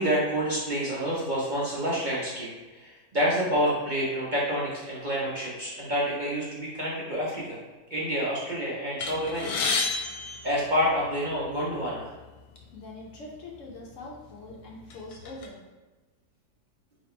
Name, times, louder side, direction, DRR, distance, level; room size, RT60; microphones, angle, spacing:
voice 1, 0.0-7.6 7.9-9.5 10.4-12.1, equal, 40° right, -7 dB, 0.8 m, -28 dB
sound 1, 9.0-11.3 12.2-12.3 12.6-12.8 13.6-13.8 14.3-15.5, left 4 dB, 85° left, 1.2 m, -31 dB
voice 2, 12.7-15.6, left 2 dB, 60° left, -2 dB, 1.0 m, -43 dB
3.4 x 2.8 x 4.3 m, 1.2 s
omnidirectional pair, 1.6 m